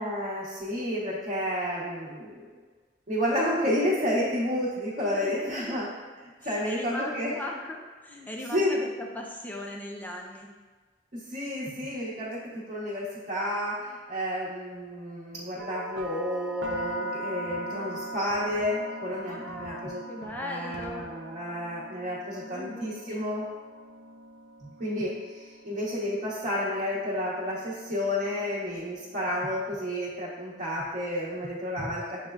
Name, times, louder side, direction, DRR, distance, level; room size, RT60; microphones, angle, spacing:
voice 1, 0.0-2.4 3.1-5.9 6.5-7.3 8.1-8.3 8.5-8.8 11.1-12.4 12.7-20.0 20.4-23.4 24.8-25.1 25.6-32.2, left 1 dB, 45° right, -9 dB, 0.8 m, -30 dB
voice 2, 5.1-5.8 6.4-10.5 19.3-21.1 22.4-23.2, left 1 dB, 10° left, 0 dB, 0.4 m, -39 dB
sound 1, 15.6-29.5, right 1 dB, 85° right, 0.4 m, -41 dB
sound 2, 16.6-17.0 17.5-17.7 18.3-18.8 19.5-19.8 20.2-20.5 20.7-21.2, left 2 dB, 80° left, 0.6 m, -49 dB
6.8 x 2.3 x 2.2 m, 1.4 s
head